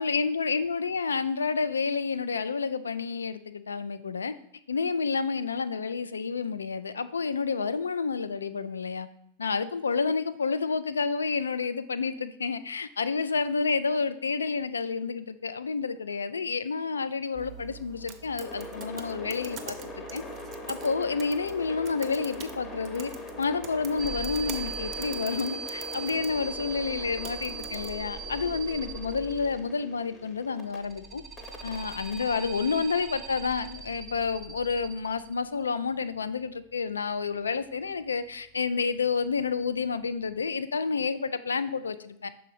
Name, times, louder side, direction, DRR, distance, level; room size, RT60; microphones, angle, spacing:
voice 1, 0.0-4.3 4.7-9.1 9.4-19.8 20.1-20.2 20.7-23.1 23.4-31.2 31.6-42.3, left 5 dB, 70° left, 13 dB, 0.3 m, -29 dB
sound 1, 17.3-28.0, right 9 dB, 35° right, 0.6 m, -46 dB
sound 2, 18.4-30.8 31.4-33.5, left 1 dB, 25° left, 0.9 m, -42 dB
sound 3, 24.0-29.8 30.6-35.6, right 5 dB, 5° right, 0.8 m, -39 dB
6.3 x 3.9 x 4.0 m, 0.76 s
figure-of-eight pair, 90°, 0 cm